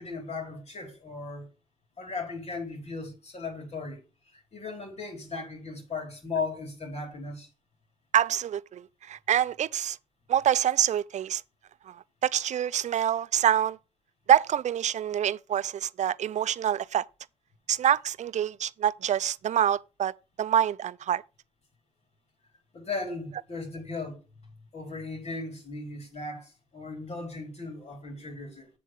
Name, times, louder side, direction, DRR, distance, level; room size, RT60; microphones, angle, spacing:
voice 1, 0.0-1.5 2.0-4.0 4.3-7.5 22.7-24.2 24.7-28.7, left 3 dB, 55° left, 4.4 m, -37 dB
voice 2, 8.1-10.0 10.3-11.4 11.9-12.0 12.2-13.8 14.3-17.0 17.7-20.1 20.4-21.2, right 10 dB, 60° right, 0.5 m, -26 dB
7.7 x 7.5 x 4.7 m
hypercardioid pair, 40°, 13 cm